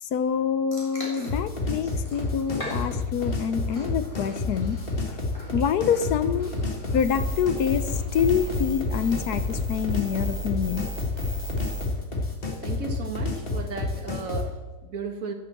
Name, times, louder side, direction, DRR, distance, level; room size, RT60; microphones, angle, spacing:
voice 1, 0.0-5.2 5.5-6.5 6.9-10.9, left 7 dB, 80° left, 13 dB, 1.3 m, -26 dB
sound 1, 0.7-10.3, left 1 dB, 20° left, 3.9 m, -44 dB
sound 2, 1.3-14.5, left 3 dB, 35° left, 1.9 m, -30 dB
sound 3, 7.0-11.9, equal, 15° right, 2.6 m, -35 dB
voice 2, 12.6-15.3, right 5 dB, 60° right, 5 dB, 1.9 m, -35 dB
11.5 x 9.1 x 7.6 m, 1.2 s
omnidirectional pair, 1.7 m